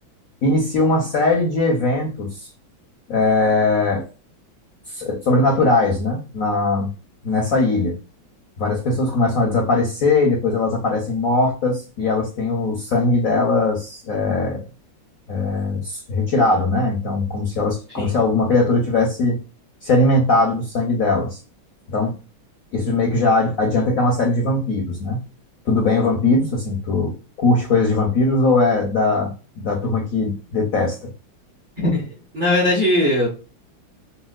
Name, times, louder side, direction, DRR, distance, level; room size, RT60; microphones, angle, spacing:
voice 1, 0.4-2.5 3.1-4.0 4.9-6.9 7.2-7.9 8.6-14.6 15.3-19.4 19.8-21.4 21.9-22.1 22.7-25.2 25.7-31.1, left 2 dB, 60° left, 1 dB, 0.9 m, -20 dB
voice 2, 31.8-32.1 32.3-33.3, left 1 dB, 35° right, -3 dB, 0.9 m, -19 dB
4.2 x 2.3 x 2.2 m, 0.34 s
omnidirectional pair, 2.2 m